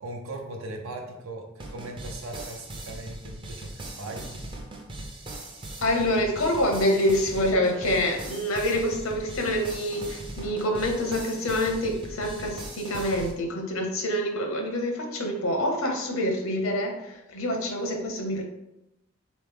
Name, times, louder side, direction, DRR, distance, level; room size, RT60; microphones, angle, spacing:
voice 1, 0.0-4.3, right 2 dB, 80° right, 3 dB, 0.7 m, -39 dB
sound 1, 1.6-13.3, right 1 dB, 25° right, 0.5 m, -39 dB
voice 2, 5.8-18.4, left 1 dB, 75° left, 2 dB, 0.8 m, -26 dB
3.9 x 3.1 x 3.5 m, 0.88 s
head